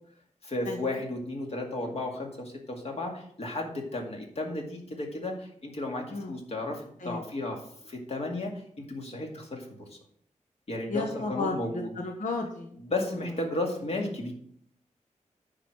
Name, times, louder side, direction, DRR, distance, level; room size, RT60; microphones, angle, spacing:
voice 1, 0.4-8.5 8.8-10.0 10.7-11.9 12.8-14.3, left 2 dB, 55° left, 1 dB, 2.2 m, -34 dB
voice 2, 10.9-12.7 13.0-13.2, left 3 dB, 85° left, 1 dB, 1.2 m, -33 dB
10.0 x 5.1 x 6.2 m, 0.63 s
wide cardioid pair, 130°, 13 cm